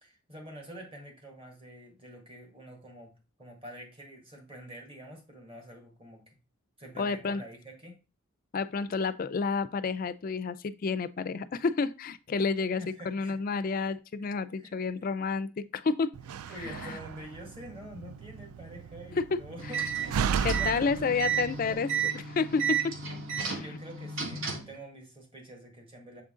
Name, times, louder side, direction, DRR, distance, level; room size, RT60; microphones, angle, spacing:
voice 1, 0.0-3.1 3.4-6.4 6.8-8.0 12.8-13.4 14.2-14.3 14.5-15.1 16.5-22.0 23.4-26.2, equal, 25° right, 1.6 m, -47 dB
voice 2, 7.0-7.4 8.5-16.1 16.6-17.0 19.1-19.2 20.4-23.0 23.4-23.8, left 4 dB, 40° left, 0.3 m, -30 dB
Slam, 16.1-21.7, right 7 dB, 80° right, 0.3 m, -35 dB
sound 1, 19.6-24.8, right 7 dB, 60° right, 1.4 m, -33 dB
7.0 x 3.7 x 3.7 m
head